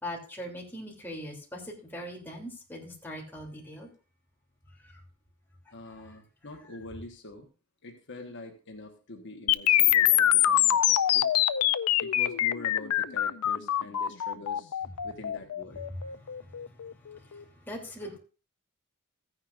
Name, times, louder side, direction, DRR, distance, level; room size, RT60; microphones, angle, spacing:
voice 1, 0.0-3.9 4.8-4.9 17.1-17.4 17.7-18.2, equal, 10° left, -3 dB, 3.0 m, -40 dB
voice 2, 5.7-7.5 7.8-11.3 12.0-15.8, left 2 dB, 55° left, 3 dB, 1.3 m, -45 dB
sound 1, 9.5-17.4, left 12 dB, 85° left, 0.5 m, -25 dB
15.0 x 9.6 x 2.5 m, 0.35 s
head